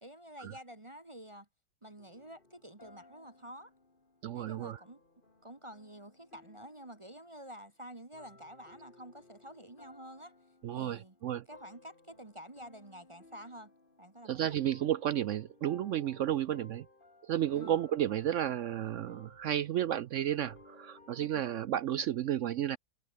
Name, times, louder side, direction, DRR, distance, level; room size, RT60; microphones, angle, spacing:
voice 1, 0.0-1.5 1.8-3.7 4.3-5.0 5.4-10.3 10.7-11.1 11.5-13.7 14.0-14.6 17.5-17.7 21.2-21.4, equal, 20° right, 1.3 m, -49 dB
sound 1, 2.0-7.7 8.1-21.6, left 2 dB, 30° left, 3.0 m, -60 dB
voice 2, 4.2-4.8 10.6-11.5 14.2-16.9 17.2-22.8, right 11 dB, 70° right, 0.7 m, -32 dB
omnidirectional pair, 1.8 m